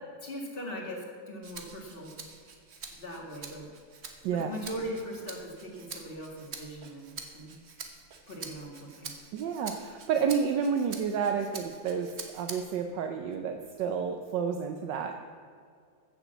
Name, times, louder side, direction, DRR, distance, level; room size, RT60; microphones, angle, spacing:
voice 1, 0.2-2.3 2.9-3.7 4.3-7.5 8.3-9.1, equal, 30° left, 0 dB, 2.3 m, -40 dB
Rattle (instrument), 1.4-12.9 13.3-14.5, right 5 dB, 40° right, 1.1 m, -46 dB
voice 2, 9.3-15.2, right 6 dB, 75° right, 5 dB, 1.4 m, -30 dB
14.5 x 7.1 x 7.1 m, 2.2 s
omnidirectional pair, 2.0 m